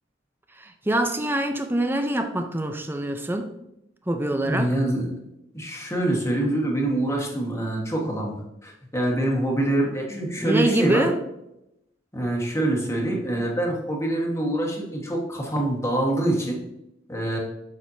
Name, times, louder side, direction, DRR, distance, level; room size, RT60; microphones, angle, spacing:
voice 1, 0.6-3.5 4.1-4.7 10.1-11.2, right 1 dB, 10° right, 6 dB, 0.5 m, -25 dB
voice 2, 4.4-5.1 5.5-11.0 12.1-16.6 17.1-17.4, right 1 dB, 15° left, -1 dB, 1.4 m, -25 dB
7.5 x 6.3 x 2.7 m, 0.85 s
head